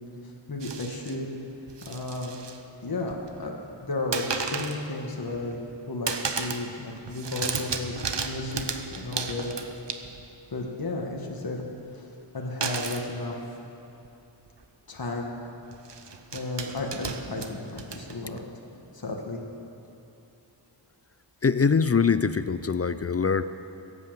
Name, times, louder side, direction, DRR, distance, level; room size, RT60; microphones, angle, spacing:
voice 1, 0.5-1.3 1.9-2.4 2.8-3.5 3.8-6.1 6.4-9.5 10.5-11.7 11.9-12.0 12.3-13.3 14.9-15.3 16.3-18.4 18.9-19.4, left 2 dB, 50° left, 0 dB, 1.6 m, -33 dB
sound 1, 0.6-1.2 1.7-2.6 2.9-3.4 4.1-4.8 5.3-5.7 6.1-6.7 7.0-10.4 12.6-13.1 14.0-14.1 14.5-14.6 15.7-18.4, right 5 dB, 60° right, 1.0 m, -34 dB
voice 2, 21.4-23.4, left 5 dB, 35° left, 13 dB, 0.4 m, -23 dB
16.5 x 8.5 x 7.5 m, 2.9 s
wide cardioid pair, 70°, 47 cm